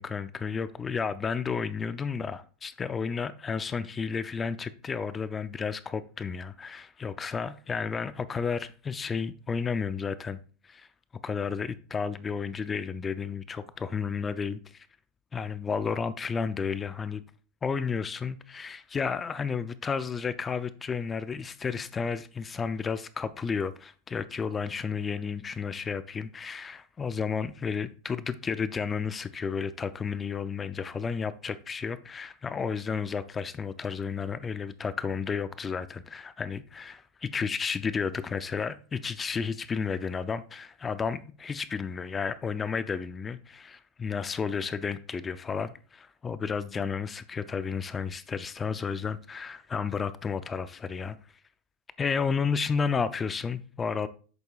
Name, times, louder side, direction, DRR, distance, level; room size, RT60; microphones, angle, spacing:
voice 1, 0.0-10.4 10.6-10.9 11.2-14.9 15.3-17.2 17.6-51.2 52.0-54.1, left 5 dB, 20° left, 0.5 m, -32 dB
8.5 x 6.8 x 2.4 m
supercardioid pair, 135°, 0 cm